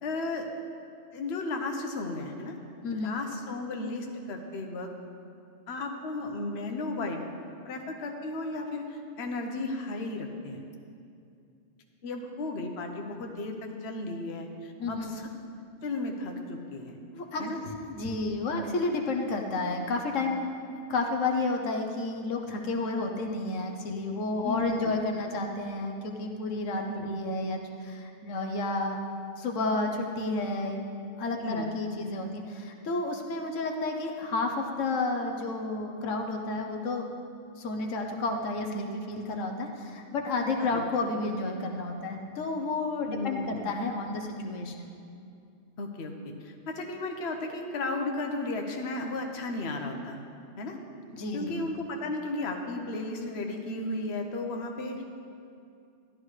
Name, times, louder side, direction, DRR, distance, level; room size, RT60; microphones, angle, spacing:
voice 1, 0.0-0.5 1.1-2.6 2.9-4.9 5.7-7.2 7.6-10.6 12.0-15.3 15.8-17.0 17.4-17.6 24.4-24.7 26.9-27.1 31.4-31.7 40.6-40.8 43.1-43.6 45.8-50.2 50.6-50.8 51.3-55.0, left 2 dB, 60° left, 2 dB, 1.1 m, -34 dB
voice 2, 2.8-3.1 14.8-15.1 17.1-17.5 17.9-20.5 20.9-29.0 29.4-30.8 31.2-37.1 37.6-44.9 51.1-51.6, left 2 dB, 85° left, 2 dB, 1.2 m, -31 dB
13.0 x 11.5 x 3.2 m, 2.5 s
omnidirectional pair, 1.3 m